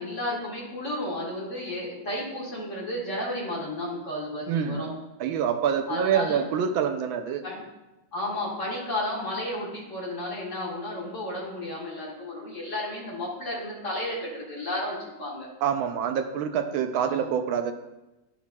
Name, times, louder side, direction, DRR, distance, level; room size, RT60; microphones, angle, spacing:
voice 1, 0.0-4.9 5.9-6.4 7.4-7.6 8.1-15.5 17.0-17.2, left 1 dB, 40° left, -4 dB, 1.9 m, -32 dB
voice 2, 4.5-4.8 5.2-7.4 15.6-17.7, right 8 dB, 80° right, 7 dB, 1.4 m, -26 dB
12.0 x 5.7 x 2.3 m, 1.0 s
omnidirectional pair, 2.2 m